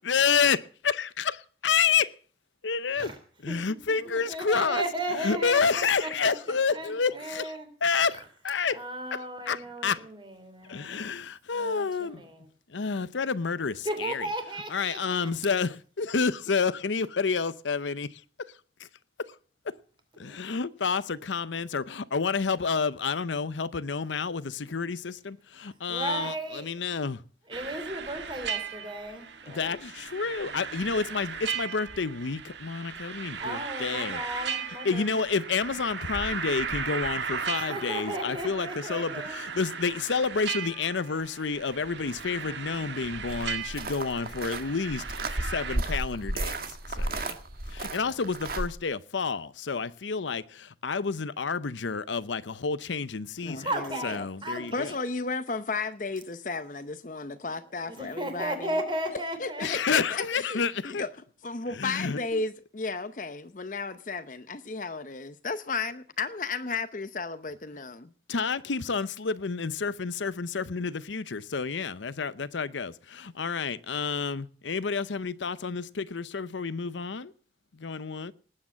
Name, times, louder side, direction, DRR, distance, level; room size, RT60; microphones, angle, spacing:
voice 1, 0.0-2.1 2.6-3.1 3.4-4.8 5.2-8.8 9.1-10.0 10.7-12.2 12.7-14.3 14.7-18.2 18.8-18.9 19.6-19.7 20.2-27.2 29.5-34.2 34.8-47.4 47.7-53.7 54.0-54.9 59.6-61.0 61.7-62.4 68.3-77.3 77.7-78.3, left 5 dB, 90° left, 0.7 m, -29 dB
voice 2, 3.9-6.3 6.7-7.7 8.7-11.1 11.5-12.5 13.8-15.3 20.2-20.4 25.9-26.7 27.5-29.8 33.4-35.1 37.5-39.3 53.5-55.0 57.9-59.7, right 1 dB, 25° right, 3.4 m, -35 dB
sound 1, 27.5-45.8, right 6 dB, 75° right, 1.6 m, -37 dB
sound 2, 43.3-48.7, right 2 dB, 50° right, 1.8 m, -33 dB
voice 3, 53.4-54.3 54.7-58.8 59.1-61.1 61.4-68.1, left 4 dB, 45° left, 0.8 m, -34 dB
19.0 x 8.8 x 7.5 m
head